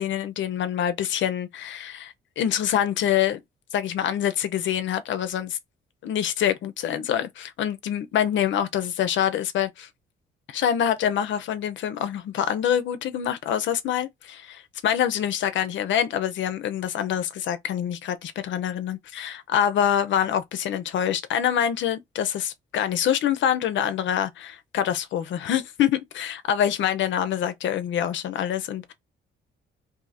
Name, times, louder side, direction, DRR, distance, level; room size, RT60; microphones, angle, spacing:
voice 1, 0.0-3.4 3.7-5.6 6.0-9.9 10.5-28.9, left 9 dB, 70° left, 0.6 m, -25 dB
2.7 x 2.5 x 4.0 m
cardioid pair, 90°, 20 cm